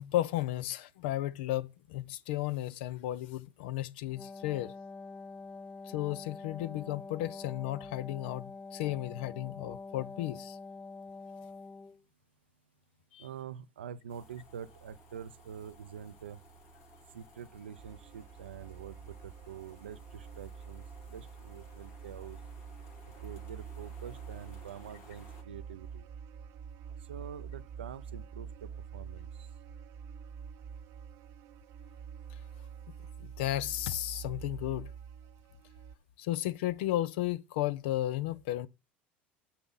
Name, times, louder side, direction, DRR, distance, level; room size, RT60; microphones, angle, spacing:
voice 1, 0.0-4.7 5.9-10.6 13.1-13.2 33.2-34.9 36.2-38.7, left 14 dB, 70° left, 0.6 m, -34 dB
Wind instrument woodwind instrument, 4.0-12.0, left 3 dB, 25° left, 0.5 m, -46 dB
voice 2, 13.2-16.4 17.1-22.4 23.2-26.1 27.0-29.5, right 8 dB, 90° right, 0.4 m, -46 dB
sound 1, 14.1-25.4, left 1 dB, 55° left, 2.6 m, -57 dB
sound 2, 17.8-36.0, right 7 dB, 55° right, 0.7 m, -47 dB
6.8 x 5.7 x 5.4 m
hypercardioid pair, 80°, 6 cm